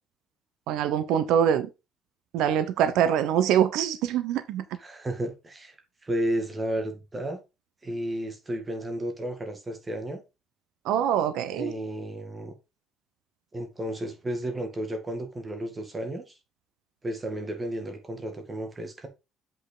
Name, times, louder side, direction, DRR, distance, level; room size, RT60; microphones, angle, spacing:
voice 1, 0.7-1.7 2.3-4.6 10.8-11.7, right 9 dB, 80° right, 0.9 m, -24 dB
voice 2, 4.8-5.8 6.0-7.4 7.8-10.2 11.5-12.5 13.5-16.2 17.0-19.1, right 1 dB, 15° right, 1.9 m, -32 dB
7.8 x 5.7 x 3.9 m
cardioid pair, 160°, 0 cm